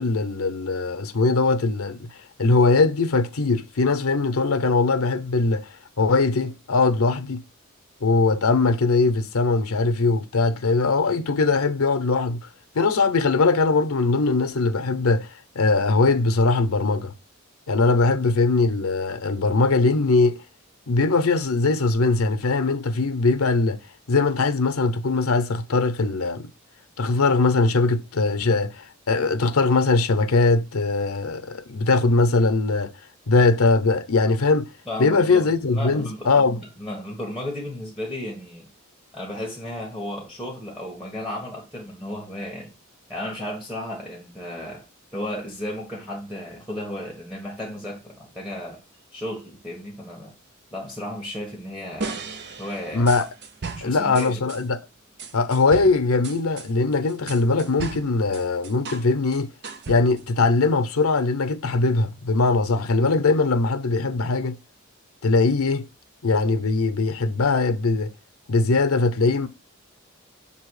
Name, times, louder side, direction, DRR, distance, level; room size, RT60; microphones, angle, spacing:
voice 1, 0.0-2.1 2.4-5.7 6.0-7.4 8.0-12.4 12.7-15.3 15.5-17.1 17.7-20.4 20.9-23.8 24.1-26.5 27.0-32.9 33.3-34.7 35.0-36.6 52.9-53.3 53.8-54.8 55.3-59.5 59.9-64.6 65.2-65.9 66.2-68.1 68.5-69.5, left 3 dB, 90° left, 0.7 m, -21 dB
voice 2, 34.9-38.7 39.1-42.7 43.1-44.8 45.1-48.8 49.1-50.4 50.7-52.2 52.6-53.1 53.8-54.4, left 1 dB, 5° right, 1.4 m, -34 dB
sound 1, 52.0-54.6 55.2-59.1 59.3-60.3, right 4 dB, 55° right, 0.7 m, -36 dB
6.9 x 2.9 x 4.8 m
head